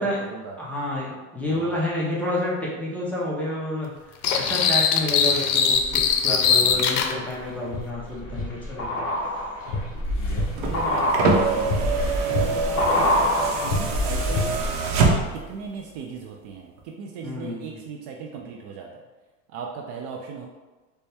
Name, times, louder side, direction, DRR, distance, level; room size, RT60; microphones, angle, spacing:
voice 1, 0.0-0.6 1.5-1.8 6.6-6.9 10.2-11.8 12.2-14.6 15.1-19.0 19.5-20.5, right 5 dB, 45° right, 1 dB, 0.4 m, -37 dB
voice 2, 0.6-3.9 4.3-9.0 17.2-17.8, left 1 dB, 5° left, -6 dB, 0.6 m, -29 dB
sound 1, 4.2-7.1, left 7 dB, 85° left, 0.6 m, -21 dB
sound 2, 5.8-6.5 7.0-14.8 15.1-15.2, left 1 dB, 30° left, 0.8 m, -26 dB
sound 3, 10.4-15.6 16.8-16.9, right 3 dB, 60° right, 0.8 m, -25 dB
4.1 x 2.2 x 3.4 m, 1.2 s
supercardioid pair, 130°, 43 cm